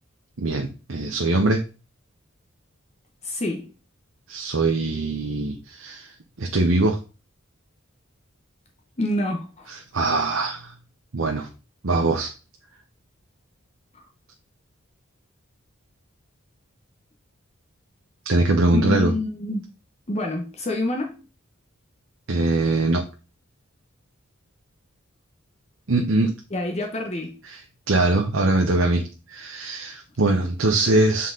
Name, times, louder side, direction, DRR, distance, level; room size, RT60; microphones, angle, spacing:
voice 1, 0.4-1.6 4.3-6.1 6.4-7.0 9.7-10.7 11.1-11.5 11.8-12.3 18.2-19.1 22.3-23.0 25.9-26.3 27.4-27.6 27.9-31.3, right 2 dB, 75° right, 0.9 m, -22 dB
voice 2, 3.2-3.7 9.0-9.7 13.9-14.0 18.7-19.7 20.1-21.2 26.5-27.4, left 1 dB, 30° left, 0.9 m, -27 dB
7.5 x 4.1 x 3.8 m
head